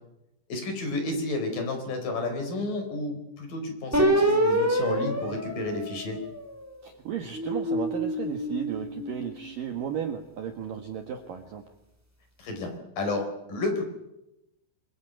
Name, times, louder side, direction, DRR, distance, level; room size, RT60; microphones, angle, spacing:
voice 1, 0.5-6.2 12.4-13.8, left 2 dB, 45° left, 5 dB, 5.7 m, -31 dB
sound 1, 3.9-6.6 7.2-9.7, right 1 dB, 5° right, 2.2 m, -27 dB
voice 2, 6.8-11.6, right 8 dB, 60° right, 5 dB, 2.5 m, -34 dB
26.5 x 23.5 x 9.0 m, 0.92 s
omnidirectional pair, 5.8 m